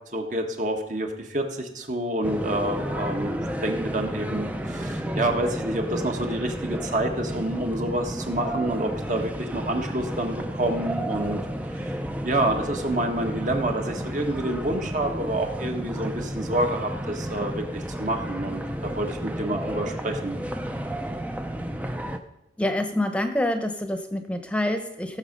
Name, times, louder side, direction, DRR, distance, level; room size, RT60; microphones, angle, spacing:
voice 1, 0.1-11.4 11.7-12.0 12.2-20.4, right 1 dB, 45° right, 3 dB, 1.6 m, -28 dB
sound 1, 2.2-22.2, right 1 dB, 10° right, 0.6 m, -32 dB
voice 2, 22.6-25.2, left 1 dB, 5° left, 7 dB, 1.0 m, -26 dB
16.5 x 7.4 x 5.3 m, 0.89 s
head